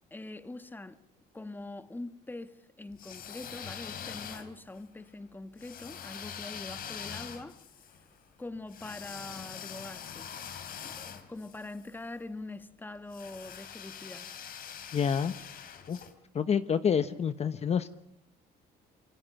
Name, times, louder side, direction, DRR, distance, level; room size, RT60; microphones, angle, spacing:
voice 1, 0.1-1.0 1.3-7.5 8.4-10.3 10.8-14.3, left 2 dB, 10° left, 1.5 m, -43 dB
sound 1, 2.9-4.8 5.6-12.0 13.1-16.1, left 8 dB, 60° left, 3.5 m, -44 dB
voice 2, 14.9-15.3 15.9-16.0 16.3-17.9, left 7 dB, 40° left, 1.0 m, -28 dB
28.0 x 23.5 x 7.1 m
cardioid pair, 110°, 17 cm